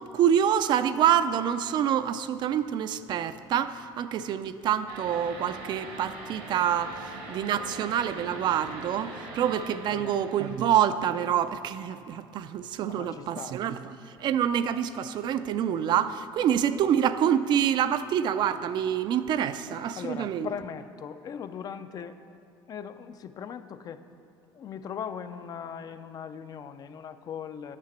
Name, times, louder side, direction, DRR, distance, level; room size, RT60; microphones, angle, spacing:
voice 1, 0.0-20.5, right 9 dB, 50° right, 12 dB, 0.4 m, -26 dB
sound 1, 4.9-10.5, right 2 dB, 85° right, 1.7 m, -42 dB
voice 2, 12.9-13.6 19.9-22.2 22.7-24.0 24.5-27.8, left 7 dB, 40° left, 11 dB, 0.4 m, -39 dB
7.4 x 5.8 x 7.3 m, 2.5 s
cardioid pair, 110°, 10 cm